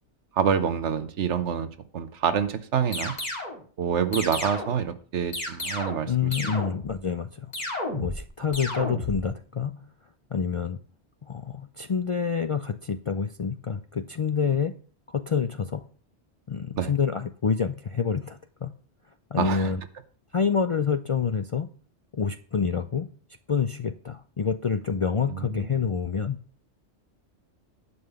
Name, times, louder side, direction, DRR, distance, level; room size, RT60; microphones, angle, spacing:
voice 1, 0.3-1.7 1.9-3.1 3.8-6.6 8.8-8.9 16.8-16.9 19.4-19.7 25.3-25.7, right 7 dB, 90° right, 10 dB, 1.2 m, -27 dB
sound 1, 2.9-3.6 4.1-4.8 5.3-6.1 6.3-7.0 7.5-8.2 8.5-9.2, left 1 dB, 40° left, 2.3 m, -32 dB
voice 2, 6.1-7.5 7.9-9.8 10.3-10.8 11.2-14.7 15.1-15.9 16.5-18.7 19.3-19.8 20.3-21.7 22.1-23.1 23.5-26.4, left 6 dB, 55° left, 11 dB, 0.3 m, -27 dB
11.0 x 5.5 x 6.8 m, 0.43 s
omnidirectional pair, 1.1 m